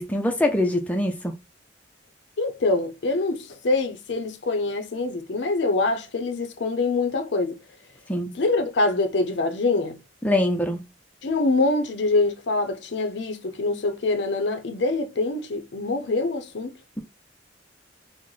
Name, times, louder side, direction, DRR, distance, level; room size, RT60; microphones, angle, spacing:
voice 1, 0.0-1.3 8.1-8.3 10.2-10.8, left 1 dB, 10° left, 0.4 m, -23 dB
voice 2, 2.4-7.6 8.3-10.0 11.2-16.7, left 3 dB, 65° left, 0.5 m, -25 dB
3.1 x 2.1 x 3.7 m
head